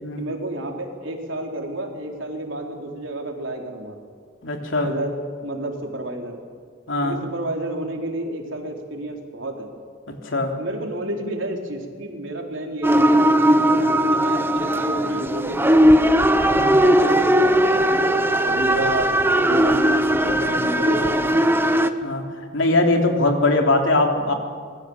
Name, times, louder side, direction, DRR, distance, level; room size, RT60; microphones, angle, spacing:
voice 1, 0.2-4.0 4.8-5.2 5.4-6.4 7.0-9.7 10.6-16.2 16.8-17.7 18.4-19.2 19.5-21.5, right 1 dB, 70° right, 1 dB, 4.1 m, -30 dB
voice 2, 4.4-4.9 6.9-7.2 10.2-10.5 16.5-16.8 22.0-22.2 22.5-24.3, left 2 dB, 70° left, 3 dB, 3.5 m, -21 dB
sound 1, 12.8-21.9, right 1 dB, 10° right, 1.1 m, -18 dB
26.5 x 21.0 x 7.3 m, 2.1 s
head